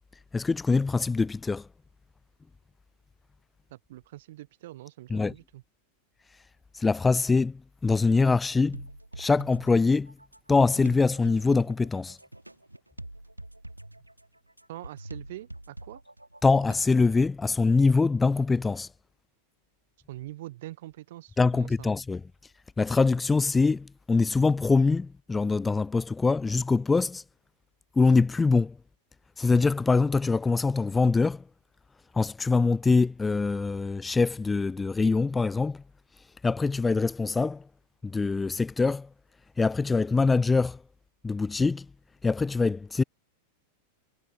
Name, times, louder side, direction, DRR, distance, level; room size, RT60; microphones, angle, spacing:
voice 1, 0.3-1.7 5.1-5.3 6.7-8.8 9.2-10.1 10.5-12.2 16.4-18.9 21.4-22.2 22.8-27.2 28.0-28.8 29.4-31.4 32.1-35.8 36.4-37.6 38.0-39.1 39.6-40.8 41.2-41.9 42.2-43.0, left 4 dB, 10° left, 0.7 m, -24 dB
voice 2, 3.7-5.6 14.7-16.0 20.1-21.9, right 16 dB, 55° right, 1.2 m, -43 dB
sound 1, 8.7-17.2, right 1 dB, 85° right, 2.9 m, -45 dB
figure-of-eight pair, 90°, 0 cm